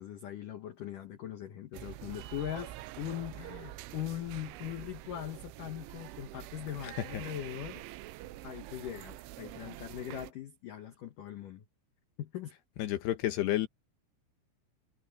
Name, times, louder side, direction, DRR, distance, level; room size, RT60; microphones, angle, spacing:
voice 1, 0.0-7.8 8.4-11.7 12.2-12.5, left 11 dB, 85° left, 1.8 m, -41 dB
sound 1, 1.7-10.3, right 15 dB, 80° right, 3.1 m, -46 dB
voice 2, 12.8-13.7, left 13 dB, 70° left, 2.9 m, -30 dB
omnidirectional pair, 5.8 m